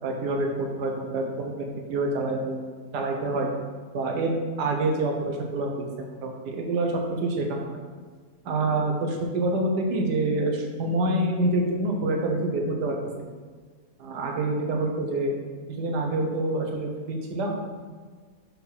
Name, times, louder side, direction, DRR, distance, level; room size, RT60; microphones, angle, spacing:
voice 1, 0.0-2.6 2.9-3.5 3.9-7.8 8.4-13.0 14.0-15.3 15.7-17.6, right 2 dB, 85° right, 1 dB, 1.5 m, -27 dB
4.3 x 4.0 x 5.6 m, 1.5 s
omnidirectional pair, 1.7 m